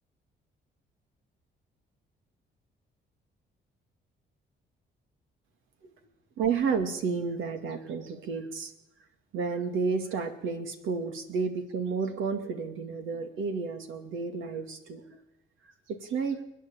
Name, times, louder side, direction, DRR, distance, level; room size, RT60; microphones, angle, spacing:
voice 1, 6.4-8.7 9.3-15.2 15.9-16.4, right 5 dB, 85° right, 7 dB, 2.4 m, -31 dB
29.5 x 10.0 x 9.0 m, 0.87 s
cardioid pair, 90°, 20 cm